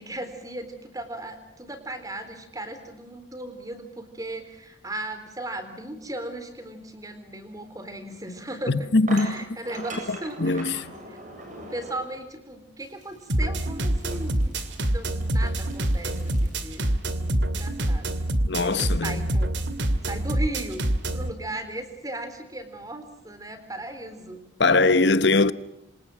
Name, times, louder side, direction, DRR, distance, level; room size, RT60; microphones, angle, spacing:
voice 1, 0.0-10.8 11.1-11.2 11.6-14.5 14.8-16.9 17.2-18.2 18.6-19.5 20.0-20.8 21.1-24.4, right 1 dB, 20° right, 3.9 m, -37 dB
sound 1, 8.1-8.2 9.1-12.2 12.8-13.4 14.0-16.7, right 1 dB, 40° right, 8.0 m, -41 dB
voice 2, 8.7-9.3 10.1-10.9 18.4-19.3 24.6-25.5, left 3 dB, 65° left, 1.1 m, -21 dB
sound 2, 13.3-21.3, right 1 dB, 70° right, 2.3 m, -26 dB
27.5 x 27.0 x 6.1 m
head